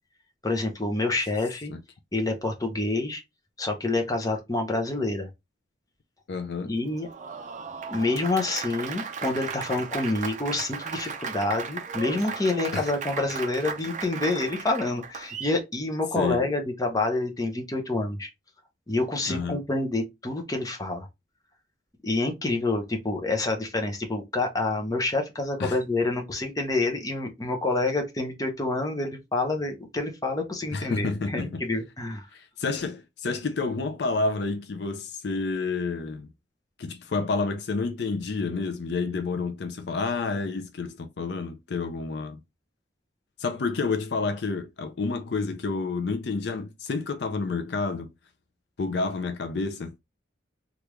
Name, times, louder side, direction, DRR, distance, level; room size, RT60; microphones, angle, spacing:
voice 1, 0.4-1.7 2.1-3.2 3.6-5.3 6.6-7.1 7.9-18.3 18.9-21.1 22.0-32.3, left 2 dB, 20° left, 0.7 m, -27 dB
voice 2, 6.3-6.7 12.7-12.9 16.1-16.4 19.3-19.6 25.6-25.8 30.7-31.6 32.3-36.3 36.8-42.4 43.4-48.1 48.8-49.9, left 4 dB, 60° left, 0.4 m, -29 dB
Applause, 6.9-15.6, right 5 dB, 40° right, 0.5 m, -36 dB
3.4 x 2.4 x 3.0 m
head